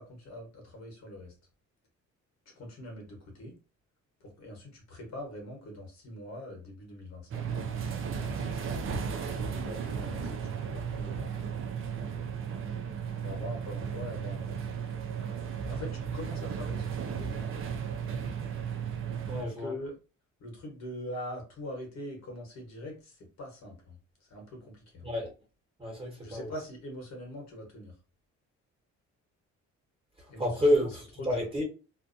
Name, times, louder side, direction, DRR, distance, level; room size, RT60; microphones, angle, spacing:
voice 1, 0.0-1.4 2.4-3.5 4.2-8.6 9.1-11.4 13.2-14.7 15.7-17.7 19.4-19.9 20.4-25.1 26.2-28.0 30.3-30.9 31.2-31.4, left 1 dB, 60° left, 1.2 m, -43 dB
sound 1, 7.3-19.4, right 7 dB, 45° right, 0.4 m, -35 dB
voice 2, 19.3-19.7 25.0-25.3 25.8-26.5 30.4-31.6, equal, 20° right, 1.2 m, -29 dB
2.6 x 2.2 x 2.5 m
cardioid pair, 90°, 30 cm